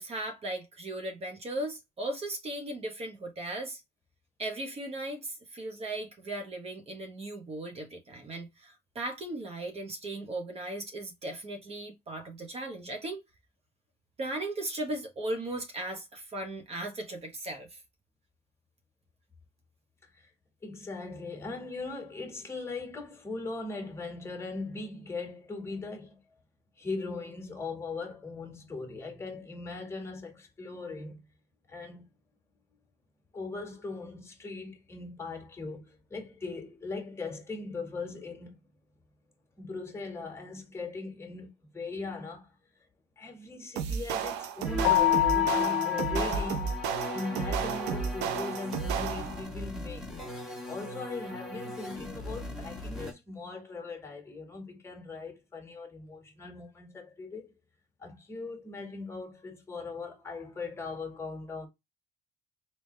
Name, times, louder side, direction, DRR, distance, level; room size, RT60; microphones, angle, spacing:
voice 1, 0.0-3.8 4.4-13.2 14.2-17.8, right 1 dB, 35° right, 1.1 m, -37 dB
voice 2, 20.6-26.4 26.8-31.2 31.7-32.1 33.3-38.6 39.6-42.5 43.2-46.7 47.1-50.1 50.7-57.6 58.0-61.7, left 3 dB, 15° left, 1.7 m, -39 dB
sound 1, 43.8-49.5, right 7 dB, 90° right, 0.7 m, -33 dB
sound 2, 44.6-53.1, left 2 dB, ahead, 1.5 m, -38 dB
Keyboard (musical), 44.8-47.3, left 15 dB, 90° left, 0.5 m, -27 dB
3.5 x 2.9 x 3.2 m
cardioid pair, 110°, 17 cm